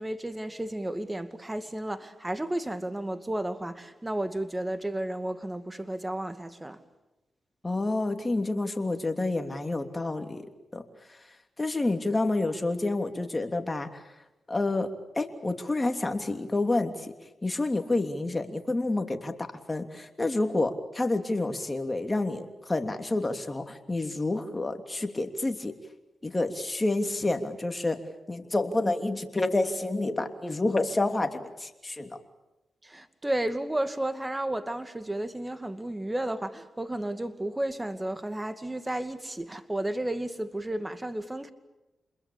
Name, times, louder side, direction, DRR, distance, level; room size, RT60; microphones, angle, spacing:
voice 1, 0.0-6.8 32.8-41.5, right 1 dB, 15° right, 2.3 m, -32 dB
voice 2, 7.6-10.5 10.7-10.8 11.6-14.0 14.5-16.9 17.4-19.3 19.7-25.7 26.2-28.0 28.3-32.2, left 2 dB, 25° left, 3.1 m, -29 dB
28.0 x 21.5 x 8.7 m
cardioid pair, 50°, 0 cm